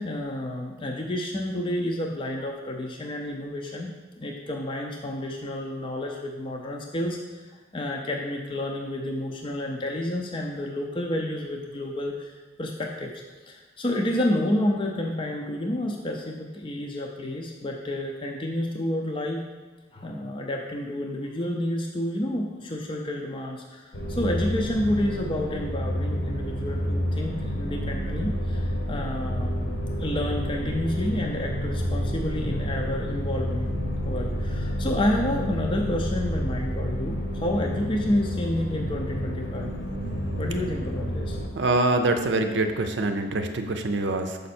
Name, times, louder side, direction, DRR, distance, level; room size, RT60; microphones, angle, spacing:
voice 1, 0.0-3.9 4.2-13.1 13.5-19.4 19.9-33.7 34.0-39.7 40.4-41.4, left 1 dB, 30° left, 0 dB, 0.5 m, -30 dB
sound 1, 23.9-41.5, equal, 65° left, 1.1 m, -29 dB
voice 2, 41.5-44.4, right 2 dB, 65° right, 6 dB, 0.6 m, -24 dB
6.5 x 5.2 x 4.3 m, 1.2 s
head